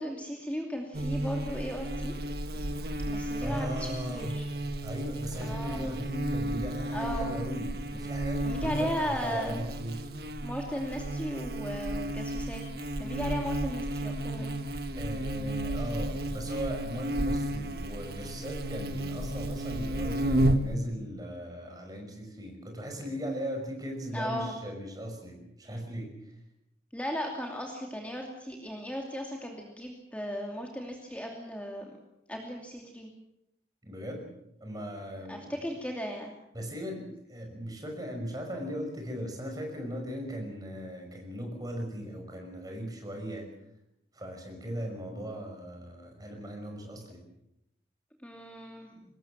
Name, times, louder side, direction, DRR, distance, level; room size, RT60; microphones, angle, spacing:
voice 1, 0.0-2.2 3.1-4.5 5.4-5.9 6.9-7.4 8.4-9.6 10.4-12.6 13.0-14.6 24.1-24.6 26.9-32.0 32.3-33.1 35.3-36.3 48.2-48.9, equal, 10° left, 1 dB, 2.7 m, -36 dB
Buzz, 0.9-20.7, right 1 dB, 60° right, 1.7 m, -33 dB
voice 2, 3.4-4.3 4.8-10.1 15.0-26.1 33.8-34.3 34.6-35.5 36.5-43.5 44.1-47.2, equal, 20° right, 3 dB, 5.8 m, -38 dB
24.0 x 20.5 x 7.4 m, 0.82 s
head